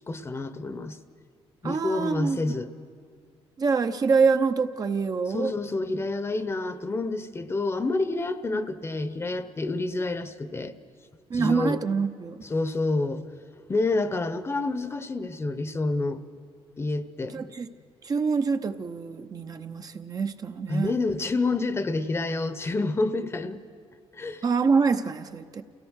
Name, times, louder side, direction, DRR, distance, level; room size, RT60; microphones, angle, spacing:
voice 1, 0.1-1.0 1.6-2.7 5.3-10.7 11.3-11.8 12.4-13.2 13.7-16.2 16.8-17.5 20.7-23.6 24.1-24.4, left 2 dB, 25° left, 12 dB, 0.9 m, -28 dB
voice 2, 1.6-2.4 3.6-5.5 11.3-12.4 17.3-17.7 18.0-20.9 24.4-25.6, right 5 dB, 35° right, 7 dB, 0.8 m, -25 dB
28.5 x 17.0 x 6.5 m, 2.1 s
cardioid pair, 110°, 10 cm